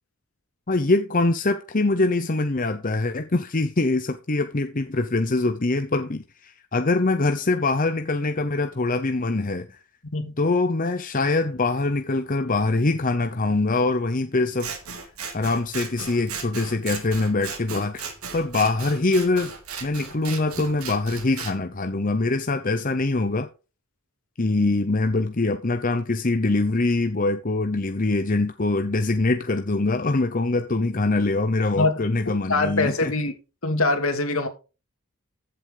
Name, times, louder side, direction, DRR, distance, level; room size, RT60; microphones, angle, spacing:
voice 1, 0.7-9.8 10.4-14.7 15.3-19.5 19.8-23.5 24.4-33.1, left 2 dB, 40° left, 0.8 m, -23 dB
Scissors, 14.6-21.5, right 6 dB, 80° right, 2.9 m, -36 dB
voice 2, 31.8-33.3 33.6-34.5, left 2 dB, 70° left, 2.6 m, -24 dB
15.0 x 7.9 x 4.0 m
head